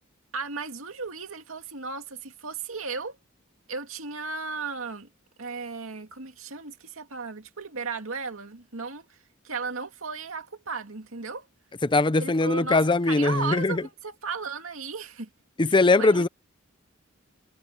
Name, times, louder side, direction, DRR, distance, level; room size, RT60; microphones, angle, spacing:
voice 1, 0.3-3.2 3.7-5.1 5.4-9.1 9.4-11.5 12.2-15.3 15.6-16.3, right 4 dB, 75° right, 2.5 m, -35 dB
voice 2, 11.8-13.8 15.6-16.3, left 3 dB, 25° left, 0.6 m, -21 dB
head